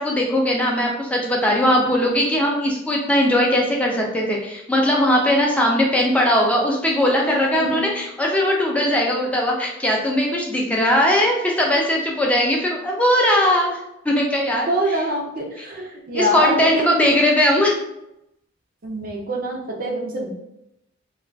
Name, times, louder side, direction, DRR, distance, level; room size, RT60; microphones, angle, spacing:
voice 1, 0.0-13.8 14.0-15.0 15.6-15.7 16.1-17.7, left 1 dB, 5° left, -2 dB, 0.5 m, -19 dB
voice 2, 7.5-7.9 14.3-17.1 18.8-20.3, right 1 dB, 45° right, -1 dB, 0.5 m, -25 dB
2.4 x 2.3 x 3.3 m, 0.83 s
head